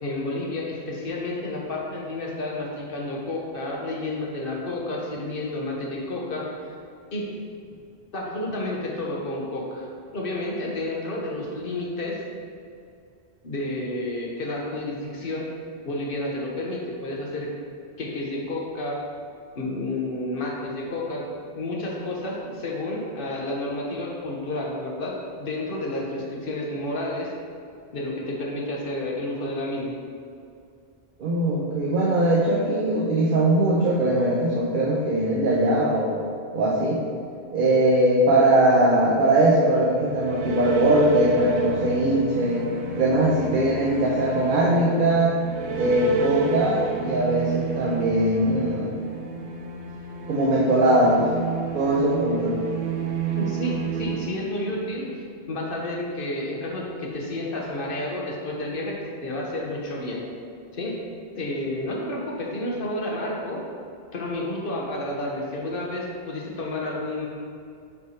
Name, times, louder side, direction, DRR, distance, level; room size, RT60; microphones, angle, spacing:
voice 1, 0.0-6.7 7.1-7.3 8.1-12.2 13.4-15.5 15.8-17.5 18.0-19.0 19.6-21.3 21.5-27.3 27.9-29.9 53.4-55.1 55.5-60.2 60.7-61.0 61.4-63.6 64.1-67.3, left 1 dB, 55° left, -2 dB, 1.1 m, -30 dB
voice 2, 31.2-36.2 36.5-37.0 37.5-42.6 42.9-45.4 45.7-48.9 50.3-51.2 51.7-52.6, right 1 dB, 55° right, -4 dB, 0.8 m, -21 dB
sound 1, 39.9-55.1, right 5 dB, 85° right, 1.0 m, -30 dB
6.9 x 3.3 x 4.2 m, 2.4 s
omnidirectional pair, 1.1 m